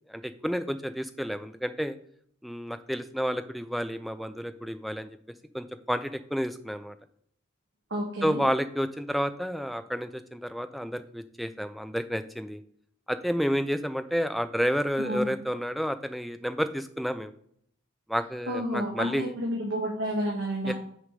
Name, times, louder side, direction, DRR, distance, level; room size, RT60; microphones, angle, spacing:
voice 1, 0.1-2.0 2.4-5.2 5.5-6.9 8.2-12.6 13.1-17.3 18.1-19.3 20.6-20.7, equal, ahead, 10 dB, 0.4 m, -30 dB
voice 2, 7.9-8.5 15.0-15.4 18.5-20.7, equal, 55° right, -3 dB, 1.4 m, -30 dB
6.5 x 4.8 x 5.2 m, 0.66 s
head